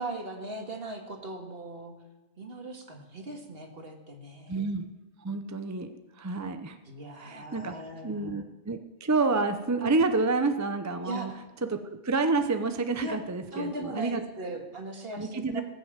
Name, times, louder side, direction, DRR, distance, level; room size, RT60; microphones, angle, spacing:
voice 1, 0.0-1.9 2.4-4.7 6.8-8.4 11.0-11.5 13.0-13.2 13.5-15.6, right 2 dB, 50° right, 2 dB, 2.0 m, -39 dB
voice 2, 4.5-4.9 5.2-6.8 7.2-7.7 8.0-11.3 11.7-14.2 15.1-15.6, right 3 dB, 20° right, 8 dB, 0.5 m, -29 dB
19.5 x 6.5 x 7.3 m, 1.1 s
omnidirectional pair, 1.3 m